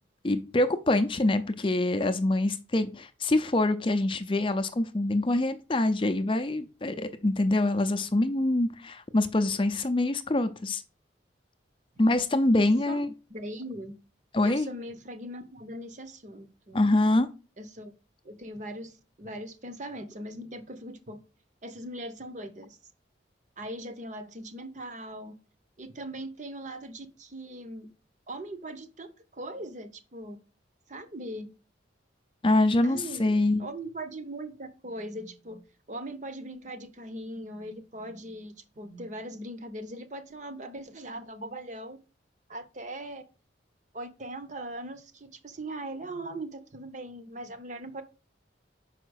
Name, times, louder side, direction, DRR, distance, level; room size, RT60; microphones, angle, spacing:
voice 1, 0.2-10.8 12.0-13.1 14.3-14.7 16.7-17.3 32.4-33.6, left 2 dB, 25° left, 9 dB, 0.5 m, -25 dB
voice 2, 12.6-13.0 13.3-14.0 14.4-16.8 17.6-17.9 18.2-21.2 21.6-22.8 23.6-25.4 25.8-27.9 28.3-30.4 30.9-31.5 32.8-35.6 35.9-42.0 42.5-43.2 43.9-48.0, right 1 dB, 40° right, 10 dB, 0.8 m, -40 dB
5.6 x 5.0 x 6.3 m, 0.34 s
head